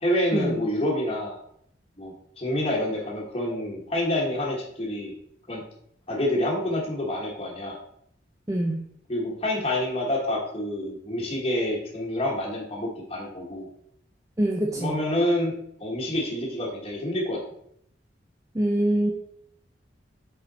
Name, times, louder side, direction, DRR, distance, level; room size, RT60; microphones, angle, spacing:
voice 1, 0.0-1.4 2.0-5.1 5.5-5.6 6.1-7.8 9.1-13.7 14.7-15.5 15.8-17.4, left 1 dB, 30° left, -4 dB, 1.3 m, -27 dB
voice 2, 8.5-8.8 14.4-15.0 18.5-19.1, right 1 dB, 15° right, -1 dB, 0.6 m, -24 dB
5.5 x 4.9 x 4.1 m, 0.70 s
head